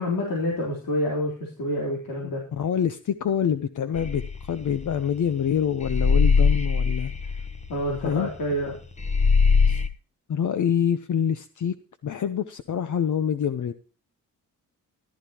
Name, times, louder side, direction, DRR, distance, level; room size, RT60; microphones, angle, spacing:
voice 1, 0.0-2.4 7.7-8.7, left 1 dB, 75° left, -1 dB, 3.8 m, -27 dB
voice 2, 2.5-7.1 8.0-8.3 9.7-9.8 10.3-11.7 12.0-13.7, left 8 dB, 60° left, 10 dB, 0.9 m, -26 dB
sound 1, 4.0-5.4 5.8-8.7 9.0-9.9, left 5 dB, 20° left, 1.0 m, -21 dB
15.0 x 12.0 x 3.0 m, 0.37 s
wide cardioid pair, 125°, 34 cm